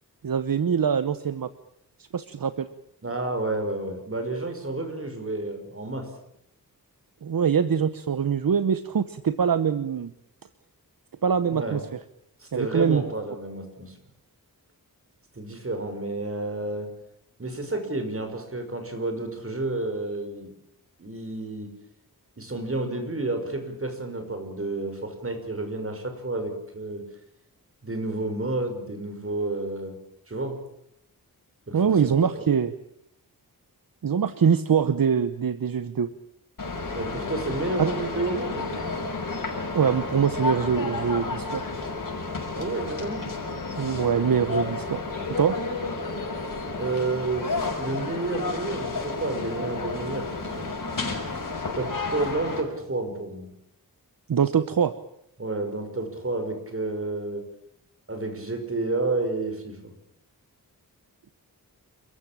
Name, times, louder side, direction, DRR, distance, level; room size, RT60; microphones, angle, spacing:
voice 1, 0.2-1.5 2.1-2.7 7.2-10.1 11.2-11.8 12.5-13.0 31.7-32.7 34.0-36.1 37.8-37.9 39.7-41.7 43.8-45.0 45.3-45.6 54.3-54.9, right 7 dB, 65° right, 12 dB, 1.0 m, -23 dB
voice 2, 3.0-6.1 11.4-11.8 12.4-14.0 15.3-16.9 17.4-20.6 21.0-21.8 22.4-27.0 27.8-30.0 30.3-30.6 31.7-32.4 37.0-38.9 42.6-43.3 46.7-50.7 51.8-53.5 55.4-57.5 58.1-59.9, right 2 dB, 35° right, 6 dB, 5.7 m, -30 dB
sound 1, 36.6-52.6, left 3 dB, 60° left, 6.9 m, -31 dB
29.0 x 15.0 x 8.8 m, 0.76 s
wide cardioid pair, 110°, 36 cm